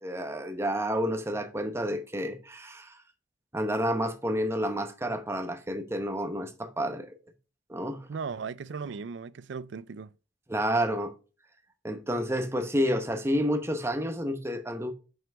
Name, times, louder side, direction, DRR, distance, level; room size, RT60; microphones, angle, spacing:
voice 1, 0.0-2.9 3.5-7.1 7.7-8.1 10.5-11.1 11.8-14.9, equal, 15° right, 0.9 m, -30 dB
voice 2, 8.1-10.1, right 5 dB, 70° right, 0.4 m, -37 dB
5.8 x 5.6 x 5.9 m
head